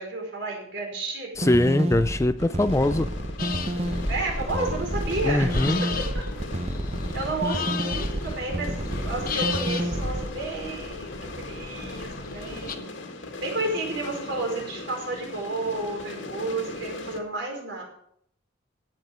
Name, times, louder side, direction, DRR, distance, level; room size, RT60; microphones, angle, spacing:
voice 1, 0.0-1.3 4.1-5.6 5.9-6.2 7.1-12.9 13.4-17.8, right 2 dB, 60° right, 0 dB, 4.7 m, -31 dB
sound 1, 1.3-10.2, right 1 dB, 30° right, 0.9 m, -30 dB
voice 2, 1.4-3.1 5.2-5.8, left 1 dB, 15° left, 11 dB, 0.4 m, -22 dB
sound 2, 2.4-17.2, left 2 dB, 70° left, 1.8 m, -39 dB
sound 3, 3.4-12.7, left 4 dB, 45° left, 0.9 m, -35 dB
13.5 x 9.4 x 5.1 m, 0.69 s
head